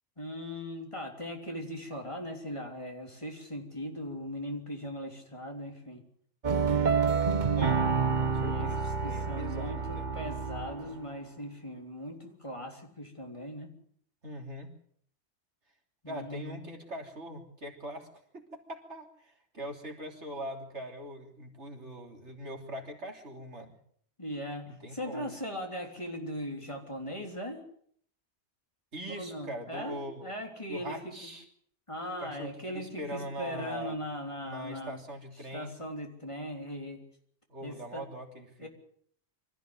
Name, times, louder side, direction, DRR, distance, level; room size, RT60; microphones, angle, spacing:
voice 1, 0.2-6.0 8.4-8.7 9.0-13.7 16.0-16.6 24.2-27.6 29.2-31.3 31.9-35.0 35.5-37.0 37.6-38.0 38.6-38.7, equal, 25° left, 2 dB, 3.6 m, -39 dB
sound 1, 6.4-11.0, right 5 dB, 40° right, 1.2 m, -28 dB
voice 2, 8.2-10.1 14.2-14.7 16.1-18.1 18.3-23.8 24.7-25.3 28.9-30.3 30.7-31.4 32.2-34.0 34.5-35.8 37.5-38.7, equal, 75° right, 2 dB, 3.5 m, -42 dB
24.5 x 14.5 x 7.9 m, 0.63 s
omnidirectional pair, 1.2 m